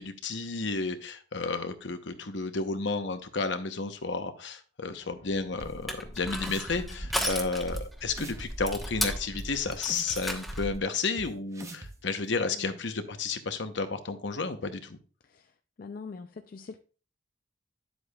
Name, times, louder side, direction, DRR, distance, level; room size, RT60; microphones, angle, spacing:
voice 1, 0.0-15.0, left 4 dB, 65° left, 0.9 m, -32 dB
sound 1, 4.9-7.7, left 2 dB, 85° left, 1.9 m, -59 dB
Crushing, 5.6-10.8, equal, ahead, 1.1 m, -35 dB
sound 2, 5.6-5.7 6.2-6.8 7.1-7.2 7.7-7.8 8.1-8.5 8.8-10.2 10.5-10.6 11.2-11.3 11.5-11.9, right 2 dB, 15° right, 0.8 m, -42 dB
voice 2, 6.8-7.3 12.5-12.7 15.3-15.5 15.8-16.8, left 4 dB, 45° left, 0.4 m, -43 dB
9.9 x 7.8 x 2.3 m
head